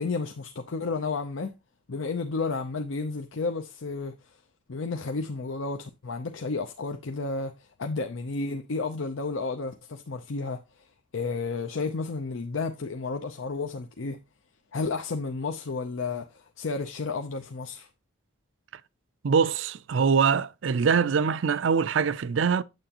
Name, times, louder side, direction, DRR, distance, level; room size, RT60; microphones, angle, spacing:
voice 1, 0.0-1.5 1.9-4.1 4.7-10.6 11.1-14.2 14.7-17.9, left 3 dB, 80° left, 0.7 m, -32 dB
voice 2, 19.2-22.6, right 6 dB, 70° right, 0.4 m, -23 dB
9.2 x 7.8 x 2.9 m
head